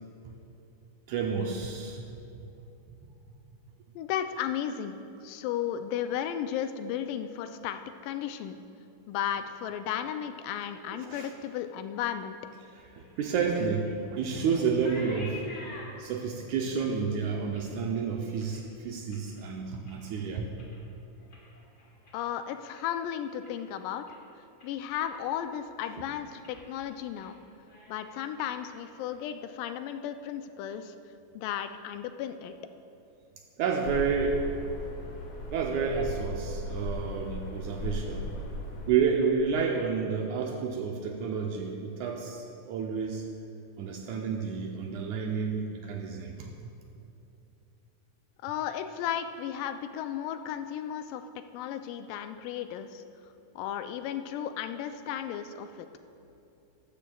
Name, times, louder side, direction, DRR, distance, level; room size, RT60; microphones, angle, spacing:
voice 1, 1.1-2.1 3.0-3.1 10.9-11.3 12.9-15.4 16.0-20.5 33.6-34.4 35.5-38.3 38.9-43.3 43.8-46.7, right 5 dB, 80° right, 1 dB, 1.8 m, -30 dB
voice 2, 4.0-8.6 9.1-12.4 22.1-24.0 24.6-27.4 27.9-31.0 31.4-32.5 48.4-51.2 51.5-53.0 53.6-55.9, left 10 dB, 85° left, 9 dB, 2.1 m, -34 dB
sound 1, 12.8-19.4 19.8-20.2 20.5-23.0 23.3-23.7 24.1-24.2 24.6-25.4 25.7-26.1 26.4-26.6 27.0-27.3 27.6-29.5, left 2 dB, 40° left, 1.8 m, -50 dB
sound 2, 33.8-38.9, left 1 dB, 65° left, 2.6 m, -37 dB
13.5 x 12.0 x 2.3 m, 2.8 s
omnidirectional pair, 3.9 m